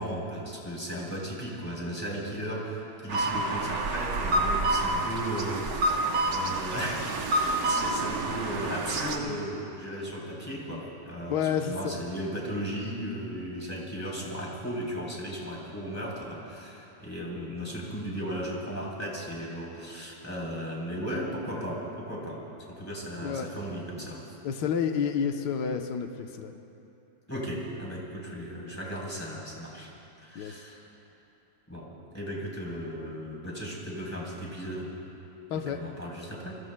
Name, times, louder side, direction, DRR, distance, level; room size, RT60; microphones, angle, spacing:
voice 1, 0.0-22.4 22.7-24.2 27.3-29.9 30.2-30.9 31.7-34.9 35.5-36.6, equal, 10° left, -4 dB, 3.5 m, -36 dB
sound 1, 3.1-9.2, right 2 dB, 60° right, 1.5 m, -28 dB
voice 2, 11.3-11.9 23.2-23.5 24.4-26.5 30.3-30.6 35.5-35.8, left 7 dB, 80° left, 5 dB, 1.5 m, -29 dB
30.0 x 22.0 x 2.2 m, 2.8 s
omnidirectional pair, 1.8 m